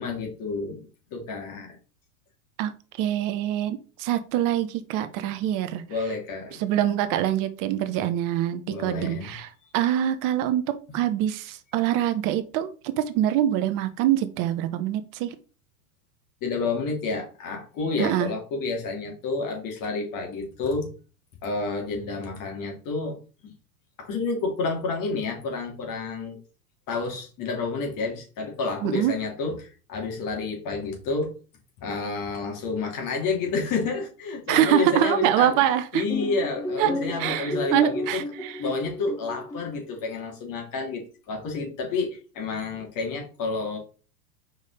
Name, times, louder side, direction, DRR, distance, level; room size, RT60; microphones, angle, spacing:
voice 1, 0.0-1.8 5.9-6.6 8.7-9.3 9.6-9.7 16.4-20.9 21.4-23.2 23.4-23.5 24.0-26.4 26.9-31.3 31.8-38.2 38.6-43.8, left 4 dB, 40° left, 1 dB, 2.9 m, -30 dB
voice 2, 3.0-5.8 6.6-9.5 9.7-15.4 18.0-18.3 28.8-29.1 34.5-36.0 36.8-36.9 37.2-38.6, right 11 dB, 40° right, 10 dB, 1.0 m, -24 dB
sound 1, 36.1-39.8, left 2 dB, 5° left, 0.7 m, -32 dB
5.4 x 4.8 x 4.1 m, 0.37 s
hypercardioid pair, 105°, 47 cm